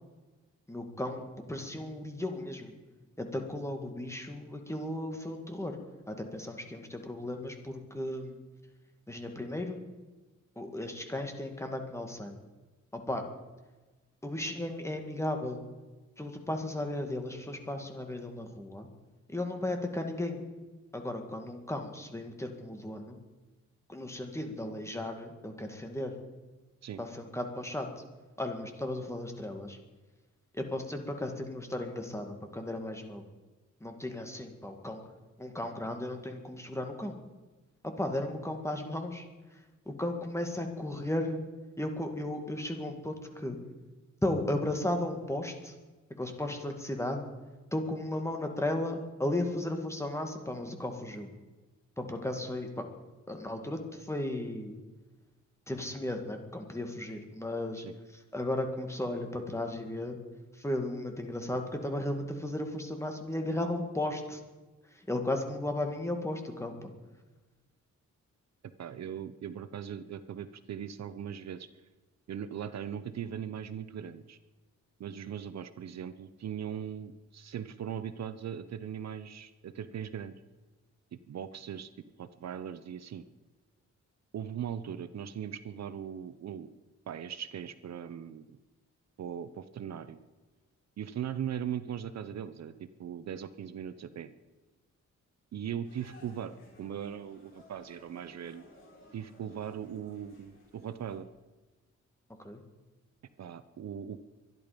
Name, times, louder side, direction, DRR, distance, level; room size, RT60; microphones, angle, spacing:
voice 1, 0.7-2.7 3.2-5.8 6.1-8.4 9.1-9.8 10.6-12.4 12.9-13.3 14.2-15.6 16.2-18.9 19.3-20.4 20.9-23.2 23.9-26.1 27.0-28.0 28.4-29.8 30.5-33.2 33.8-35.0 35.4-37.2 37.8-39.3 39.5-39.6 39.9-41.4 41.8-43.6 44.2-45.7 46.2-47.3 47.7-51.3 52.0-52.9 53.3-54.8 55.7-57.9 58.3-60.2 60.5-64.4 64.9-66.9 102.4-102.6, left 1 dB, 10° left, 4 dB, 2.3 m, -35 dB
voice 2, 68.8-71.7 72.3-74.4 75.0-80.3 81.1-81.9 82.2-83.2 84.3-86.7 87.1-88.5 89.2-90.2 91.0-94.3 95.5-98.7 99.1-101.3 103.4-104.2, right 9 dB, 60° right, 12 dB, 0.8 m, -39 dB
sound 1, 95.8-101.2, left 1 dB, 45° left, 6.7 m, -58 dB
24.5 x 11.0 x 5.2 m, 1.2 s
cardioid pair, 115°, 30 cm